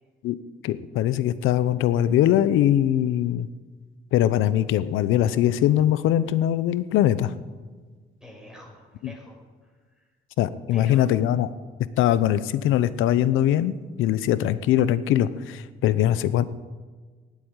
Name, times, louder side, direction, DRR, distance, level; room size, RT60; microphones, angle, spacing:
voice 1, 0.6-3.5 4.1-7.3 9.0-9.1 10.4-11.5 12.0-16.4, left 12 dB, 90° left, 15 dB, 0.7 m, -22 dB
voice 2, 8.2-10.1 10.7-11.1, equal, 5° right, 0 dB, 6.0 m, -45 dB
17.5 x 8.6 x 8.9 m, 1.4 s
cardioid pair, 90°, 20 cm